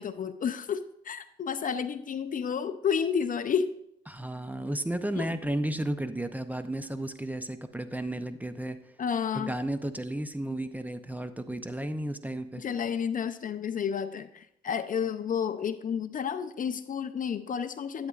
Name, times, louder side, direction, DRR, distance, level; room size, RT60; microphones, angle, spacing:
voice 1, 0.0-3.7 5.2-5.3 9.0-9.6 12.6-18.1, left 7 dB, 45° left, 11 dB, 0.5 m, -31 dB
voice 2, 4.1-8.8 9.3-12.6, right 1 dB, 10° right, 9 dB, 0.6 m, -33 dB
11.0 x 8.7 x 2.4 m, 0.73 s
cardioid pair, 90°, 20 cm